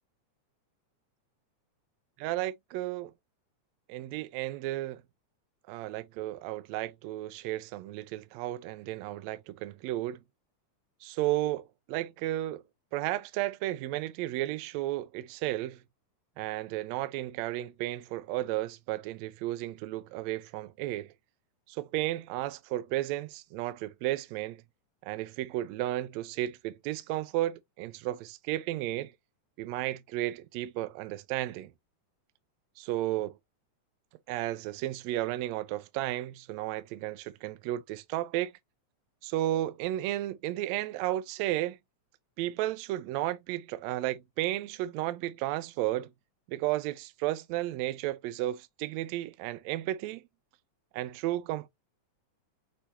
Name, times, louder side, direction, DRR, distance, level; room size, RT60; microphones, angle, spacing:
voice 1, 2.2-3.1 3.9-5.0 5.7-10.2 11.0-12.6 12.9-15.8 16.4-21.1 21.7-24.6 25.0-29.1 29.6-31.7 32.8-33.3 34.3-38.5 39.2-41.8 42.4-46.1 46.5-50.2 50.9-51.7, right 15 dB, 80° right, 1.6 m, -33 dB
6.4 x 2.8 x 2.6 m
omnidirectional pair, 3.6 m